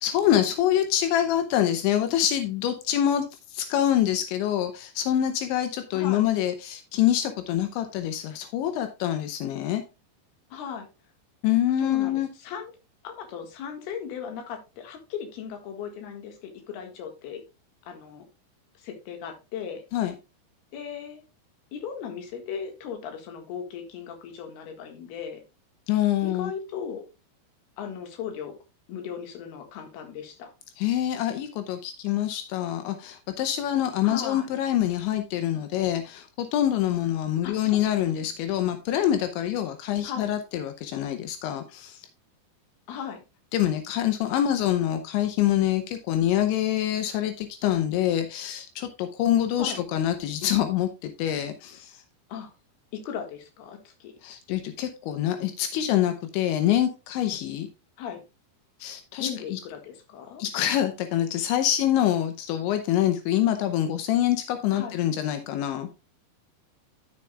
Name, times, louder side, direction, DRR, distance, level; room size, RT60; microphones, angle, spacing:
voice 1, 0.0-3.3 3.5-9.8 11.4-12.3 19.9-20.1 25.9-26.5 30.8-42.0 43.5-52.0 54.2-57.7 58.8-59.6 60.4-66.0, left 11 dB, 85° left, 3.2 m, -25 dB
voice 2, 10.5-10.9 11.8-12.7 13.0-17.4 17.9-18.3 18.8-19.8 20.7-21.2 21.7-25.4 26.2-27.0 27.8-28.6 28.9-30.5 34.0-34.5 37.4-37.6 38.2-38.3 40.0-40.3 42.9-43.2 49.6-49.8 52.3-52.5 52.9-54.1 58.0-58.2 59.2-60.4 64.7-65.0, left 7 dB, 65° left, 3.4 m, -37 dB
12.0 x 7.0 x 2.3 m
omnidirectional pair, 5.2 m